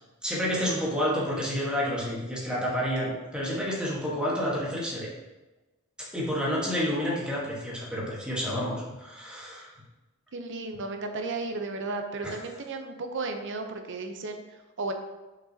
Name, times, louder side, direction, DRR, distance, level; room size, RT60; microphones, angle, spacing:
voice 1, 0.2-5.1 6.1-9.7 12.2-12.3, equal, 5° right, -6 dB, 1.3 m, -29 dB
voice 2, 10.3-14.4 14.8-14.9, right 3 dB, 60° right, 5 dB, 0.7 m, -34 dB
6.1 x 6.1 x 2.8 m, 1.1 s
head